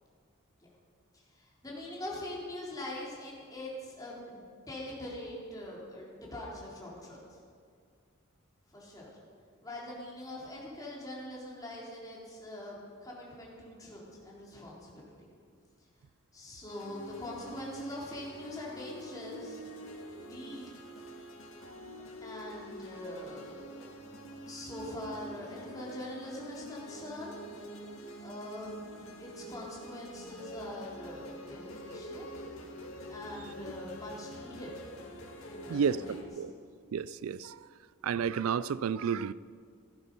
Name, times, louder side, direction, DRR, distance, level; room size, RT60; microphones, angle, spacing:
voice 1, 1.1-7.4 8.7-9.1 9.6-15.0 16.3-19.6 20.1-20.7 22.2-23.8 24.3-27.4 28.2-28.8 29.2-32.3 33.1-34.7 35.5-36.4, left 1 dB, 15° left, -5 dB, 3.7 m, -43 dB
sound 1, 16.7-36.2, equal, 75° left, 2.1 m, -46 dB
voice 2, 36.9-37.4 38.0-39.3, right 7 dB, 85° right, 18 dB, 0.4 m, -30 dB
16.0 x 13.5 x 5.5 m, 2.1 s
head